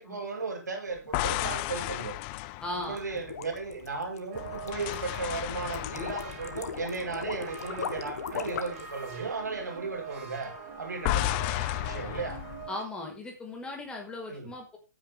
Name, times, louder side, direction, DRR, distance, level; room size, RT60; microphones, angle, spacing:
voice 1, 0.0-2.2 2.9-12.4 14.3-14.5, right 4 dB, 80° right, 4 dB, 5.1 m, -36 dB
sound 1, 1.0-3.9 4.4-7.8 8.1-8.3 11.0-12.7, left 18 dB, 35° left, 0.6 m, -33 dB
voice 2, 2.6-3.2 12.7-14.8, left 2 dB, 10° left, 1 dB, 5.2 m, -38 dB
sound 2, 2.8-8.9, left 7 dB, 60° left, 2.0 m, -38 dB
sound 3, 4.3-12.8, right 5 dB, 50° right, 5.7 m, -44 dB
15.0 x 9.7 x 3.7 m, 0.29 s
figure-of-eight pair, 125°, 9 cm